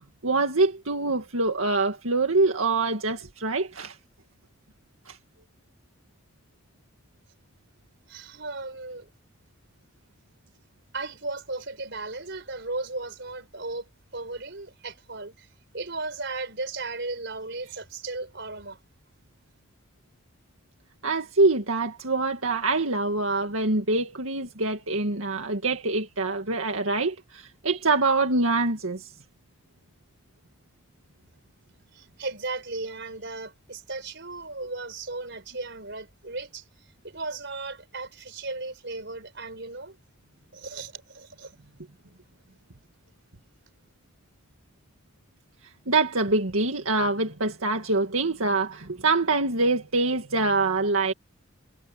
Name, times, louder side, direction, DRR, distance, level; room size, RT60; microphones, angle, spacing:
voice 1, 0.2-4.0 5.1-5.2 21.0-29.1 45.9-51.1, right 3 dB, 80° right, 2.0 m, -25 dB
voice 2, 8.1-9.1 10.9-15.5 15.7-18.8 31.9-40.0 40.5-41.5, right 3 dB, 55° right, 4.6 m, -36 dB
head